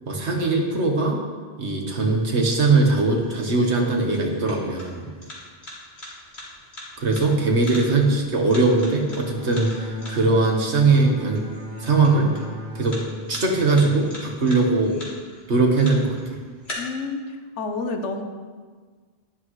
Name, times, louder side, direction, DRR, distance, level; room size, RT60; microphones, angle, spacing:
voice 1, 0.1-1.2 1.6-5.1 7.0-11.4 11.8-12.3 12.8-13.0 13.3-15.0 15.5-16.4, right 3 dB, 75° right, 1 dB, 1.8 m, -20 dB
sound 1, 1.7-16.7, left 1 dB, 65° left, 3.0 m, -43 dB
Bowed string instrument, 9.1-14.5, left 1 dB, 25° right, 3.6 m, -36 dB
voice 2, 16.8-18.2, left 3 dB, 90° left, 5 dB, 1.3 m, -29 dB
12.0 x 11.5 x 3.2 m, 1.5 s
omnidirectional pair, 1.2 m